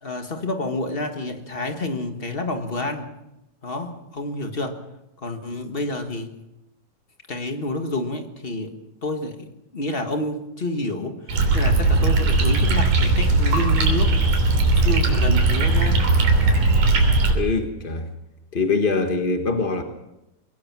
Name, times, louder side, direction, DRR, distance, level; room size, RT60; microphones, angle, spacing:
voice 1, 0.0-3.1 3.6-4.8 5.2-6.3 7.3-8.7 9.0-9.5 9.7-14.2 14.7-16.1, left 2 dB, 35° left, 5 dB, 0.9 m, -29 dB
sound 1, 11.3-17.3, right 3 dB, 85° right, 4.9 m, -18 dB
voice 2, 17.3-18.1 18.5-19.8, left 4 dB, 60° left, 5 dB, 0.5 m, -23 dB
23.0 x 19.0 x 6.1 m, 0.91 s
omnidirectional pair, 3.7 m